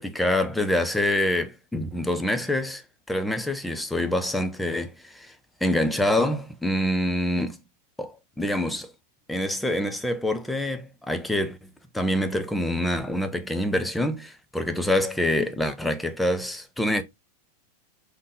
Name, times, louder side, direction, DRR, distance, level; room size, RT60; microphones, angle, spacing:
voice 1, 0.0-2.8 3.1-5.3 5.6-7.6 8.0-8.9 9.3-17.0, left 1 dB, 5° left, 0.6 m, -26 dB
3.7 x 3.2 x 3.9 m
figure-of-eight pair, 90°, 0 cm